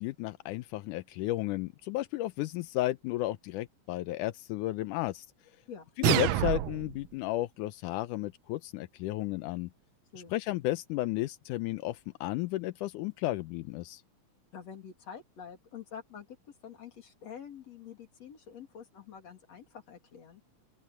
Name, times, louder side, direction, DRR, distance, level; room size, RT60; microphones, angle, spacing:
voice 1, 0.0-5.3 6.0-9.7 10.3-14.0, left 16 dB, 85° left, 2.2 m, -33 dB
sound 1, 6.0-7.0, right 14 dB, 75° right, 1.5 m, -27 dB
voice 2, 14.5-20.4, left 7 dB, 55° left, 3.8 m, -47 dB
open air
omnidirectional pair, 3.6 m